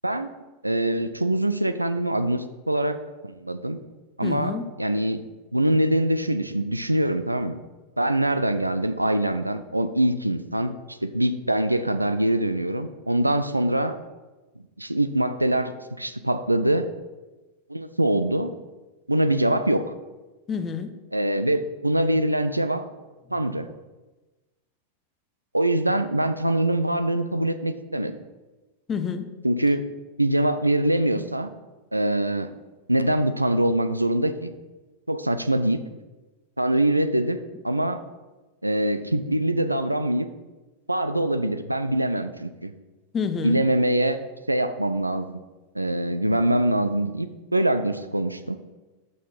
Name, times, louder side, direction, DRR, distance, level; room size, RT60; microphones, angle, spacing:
voice 1, 0.6-3.0 3.2-3.8 4.2-7.6 8.0-14.0 14.8-16.9 17.7-18.5 19.1-19.9 21.1-22.8 23.3-23.7 25.5-28.1 29.4-29.9 30.2-31.5 31.9-32.5 32.9-34.5 35.1-35.8 36.6-38.0 38.6-40.3 40.9-42.7 43.4-44.2 44.5-45.3 45.7-48.6, right 1 dB, 85° right, 10 dB, 0.5 m, -24 dB
voice 2, 4.2-4.6 20.5-20.9 28.9-29.3 43.1-43.6, left 6 dB, 25° left, 10 dB, 0.8 m, -28 dB
12.5 x 6.5 x 3.9 m, 1.2 s
figure-of-eight pair, 90°, 0 cm